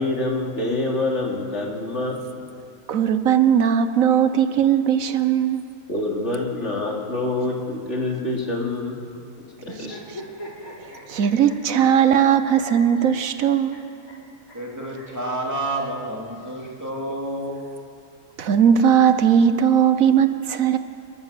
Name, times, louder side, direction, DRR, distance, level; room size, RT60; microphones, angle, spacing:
voice 1, 0.0-2.2 5.9-9.0 9.6-10.0, left 2 dB, 55° left, -1 dB, 3.1 m, -26 dB
voice 2, 2.9-5.6 9.8-9.9 11.1-13.8 18.4-20.8, right 8 dB, 80° right, 10 dB, 1.3 m, -18 dB
sound 1, 9.6-12.2 12.4-13.8 14.1-14.2 14.5-14.6 14.9-15.1 16.1-17.1, equal, 85° left, 4.1 m, -41 dB
voice 3, 14.5-17.6, right 1 dB, 10° right, -3 dB, 3.0 m, -29 dB
29.5 x 13.5 x 6.9 m, 2.5 s
omnidirectional pair, 1.4 m